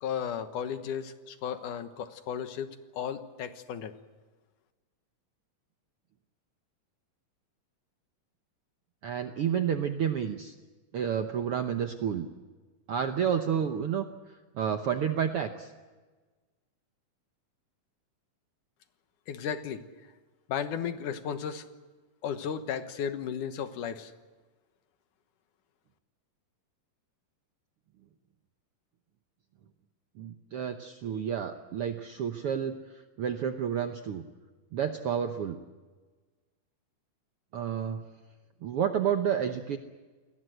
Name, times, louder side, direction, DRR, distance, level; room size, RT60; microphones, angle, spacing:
voice 1, 0.0-3.9 19.3-19.8 20.5-21.7 22.2-24.1, left 8 dB, 70° left, 9 dB, 2.7 m, -34 dB
voice 2, 9.0-10.5 10.9-12.3 12.9-14.1 14.5-15.7 30.2-32.7 33.2-34.2 34.7-35.6 37.5-38.0 38.6-39.8, right 8 dB, 70° right, 6 dB, 1.4 m, -30 dB
29.0 x 21.5 x 7.9 m, 1.3 s
omnidirectional pair, 3.9 m